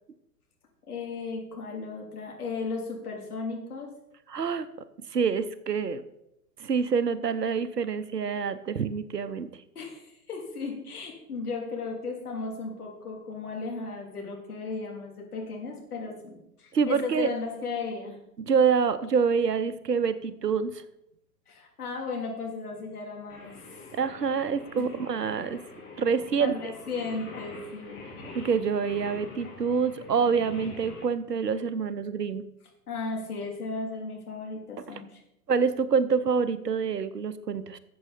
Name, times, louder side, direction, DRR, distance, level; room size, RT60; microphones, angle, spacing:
voice 1, 0.9-3.9 9.7-18.2 21.5-23.9 24.8-24.9 26.4-28.0 32.9-35.2, left 4 dB, 65° left, 0 dB, 3.2 m, -35 dB
voice 2, 4.3-4.7 5.1-6.0 6.6-9.5 16.7-17.3 18.4-20.8 23.9-25.6 26.0-26.5 28.3-32.4 35.5-37.8, right 6 dB, 80° right, 13 dB, 0.9 m, -26 dB
Singing, 23.3-31.0, left 3 dB, 25° left, 2.6 m, -45 dB
13.5 x 7.7 x 4.2 m, 0.83 s
figure-of-eight pair, 110°, 48 cm